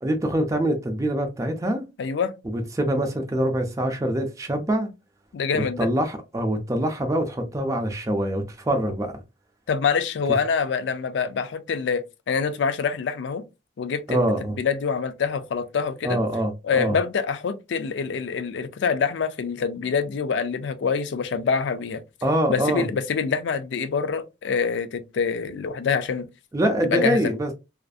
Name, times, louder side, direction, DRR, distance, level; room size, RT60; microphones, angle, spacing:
voice 1, 0.0-1.8 2.4-4.9 5.5-9.1 14.1-14.6 16.0-17.0 22.2-22.9 26.5-27.5, right 1 dB, 15° right, 0.4 m, -24 dB
voice 2, 2.0-2.3 5.3-5.9 9.7-13.4 13.8-14.3 14.6-16.2 16.6-22.0 22.5-26.3 26.8-27.3, left 6 dB, 65° left, 0.4 m, -25 dB
2.4 x 2.4 x 2.4 m
head